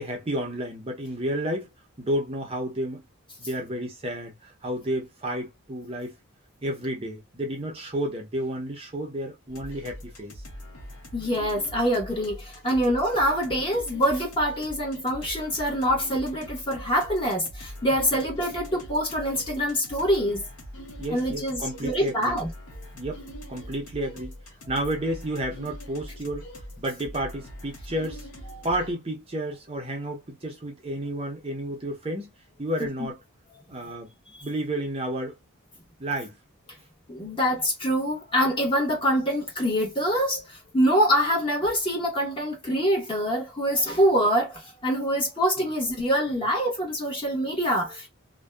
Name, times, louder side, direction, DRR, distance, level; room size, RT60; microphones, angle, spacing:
voice 1, 0.0-1.7 2.0-3.0 3.4-6.1 6.6-10.4 17.9-18.2 21.0-22.4 22.9-24.3 24.7-26.5 26.8-28.3 28.6-32.3 32.6-33.2 33.7-34.1 34.4-35.4 36.0-36.4, right 1 dB, 25° right, 0.6 m, -31 dB
sound 1, 9.5-28.9, equal, 80° left, 0.8 m, -42 dB
voice 2, 11.1-20.4 21.1-22.5 22.8-22.9 28.5-28.6 32.8-33.1 34.3-34.5 37.1-48.1, equal, 25° left, 1.1 m, -25 dB
2.6 x 2.2 x 2.2 m
head